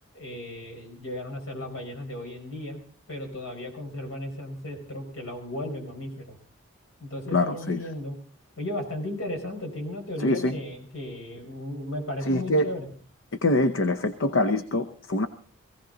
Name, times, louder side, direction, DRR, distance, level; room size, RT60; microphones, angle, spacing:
voice 1, 0.1-2.8 3.1-6.4 7.0-8.2 8.6-12.9, left 1 dB, 90° left, 3 dB, 4.9 m, -35 dB
voice 2, 7.3-7.8 10.2-10.6 12.3-12.7 13.4-15.3, left 1 dB, 70° left, 11 dB, 0.8 m, -24 dB
18.0 x 16.0 x 3.9 m, 0.43 s
head